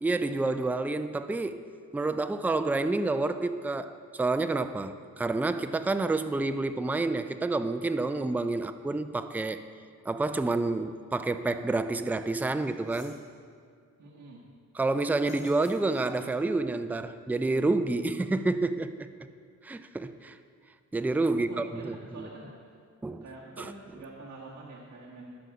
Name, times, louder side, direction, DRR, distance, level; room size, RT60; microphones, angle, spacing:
voice 1, 0.0-1.6 1.9-9.6 10.0-13.2 14.7-19.1 19.6-20.4 20.9-22.3 23.0-23.2 23.6-23.7, right 2 dB, 5° right, 0.4 m, -29 dB
sound 1, 12.3-12.4 12.7-13.2 15.1-16.5, left 2 dB, 70° left, 2.9 m, -55 dB
voice 2, 13.8-14.4 21.3-22.5 23.2-25.4, right 3 dB, 65° right, 1.8 m, -46 dB
18.5 x 6.5 x 4.9 m
wide cardioid pair, 125°, 32 cm